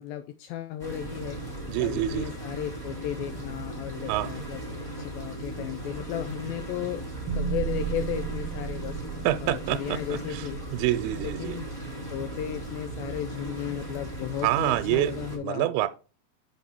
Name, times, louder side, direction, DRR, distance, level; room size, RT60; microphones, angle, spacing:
voice 1, 0.0-1.4 1.8-4.6 5.0-7.0 7.3-9.0 9.4-10.6 11.2-11.6 12.1-15.9, left 10 dB, 80° left, 2.2 m, -35 dB
sound 1, 0.8-15.4, right 1 dB, 5° left, 2.6 m, -37 dB
voice 2, 1.7-2.3 4.1-4.3 9.3-10.5 10.7-11.6 14.4-15.9, right 14 dB, 85° right, 2.5 m, -27 dB
sound 2, 7.3-11.5, right 7 dB, 65° right, 2.0 m, -34 dB
6.6 x 5.3 x 4.3 m
omnidirectional pair, 4.4 m